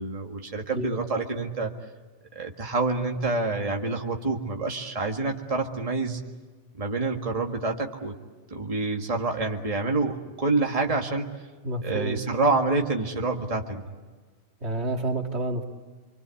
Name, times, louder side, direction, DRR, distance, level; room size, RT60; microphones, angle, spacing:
voice 1, 0.0-1.7 2.4-6.2 6.8-8.1 8.5-11.3 11.8-13.8, right 3 dB, 30° right, 2 dB, 1.9 m, -27 dB
voice 2, 0.7-1.2 11.6-12.2 14.6-15.6, right 2 dB, 65° right, 3 dB, 2.5 m, -30 dB
26.5 x 24.5 x 8.4 m, 1.4 s
omnidirectional pair, 1.2 m